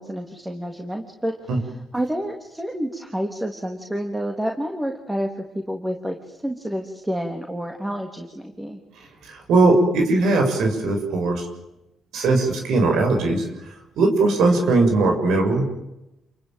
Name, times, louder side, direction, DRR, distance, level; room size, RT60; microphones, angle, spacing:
voice 1, 0.0-8.8, equal, 10° right, 4 dB, 3.2 m, -29 dB
voice 2, 9.2-11.5 12.1-13.4 14.0-15.6, right 3 dB, 80° right, 3 dB, 6.7 m, -19 dB
29.0 x 22.5 x 9.2 m, 0.92 s
cardioid pair, 90°, 0 cm